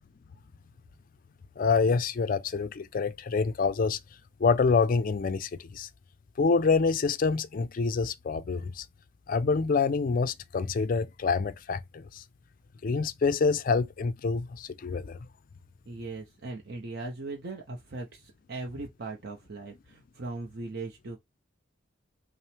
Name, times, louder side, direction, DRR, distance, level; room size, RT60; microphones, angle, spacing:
voice 1, 1.6-4.0 4.4-5.9 6.4-8.9 9.3-12.2 12.8-15.2, left 4 dB, 40° left, 0.3 m, -26 dB
voice 2, 15.9-21.2, right 3 dB, 50° right, 0.6 m, -39 dB
5.4 x 2.0 x 3.3 m
head